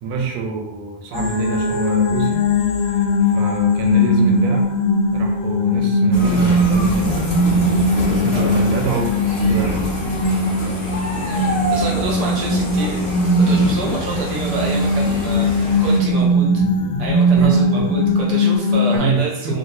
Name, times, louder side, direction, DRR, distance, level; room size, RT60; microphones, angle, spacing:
voice 1, 0.0-2.4 2.9-4.7 5.1-7.2 7.5-9.8 17.3-17.9 18.9-19.6, right 4 dB, 85° right, 2 dB, 1.4 m, -26 dB
sound 1, 1.1-19.0, left 1 dB, 75° left, 1.1 m, -19 dB
sound 2, 6.1-16.0, left 1 dB, 45° left, 0.9 m, -26 dB
voice 2, 8.3-8.7 11.2-13.1 13.4-16.5 17.0-19.6, right 3 dB, 65° right, -2 dB, 1.2 m, -28 dB
3.0 x 2.8 x 2.6 m, 0.89 s
omnidirectional pair, 2.3 m